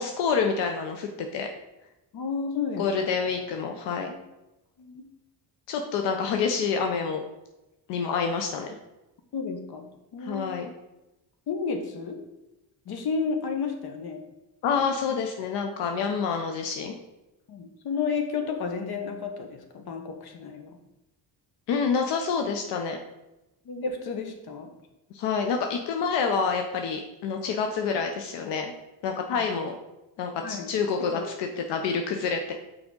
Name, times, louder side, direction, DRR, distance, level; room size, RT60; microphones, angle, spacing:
voice 1, 0.0-1.5 2.8-4.1 5.7-7.2 7.9-8.7 10.2-10.7 14.6-16.9 21.7-23.0 25.1-28.7 29.0-29.8 30.2-32.5, left 5 dB, 90° left, 4 dB, 0.7 m, -27 dB
voice 2, 2.1-2.9 4.1-4.2 4.8-5.0 9.3-10.5 11.5-12.2 12.8-14.2 14.8-15.2 17.5-20.8 23.6-24.7 29.3-29.4 30.4-30.7 31.1-31.2, left 5 dB, 65° left, 5 dB, 1.1 m, -32 dB
6.1 x 4.9 x 3.8 m, 0.96 s
cardioid pair, 85°, 41 cm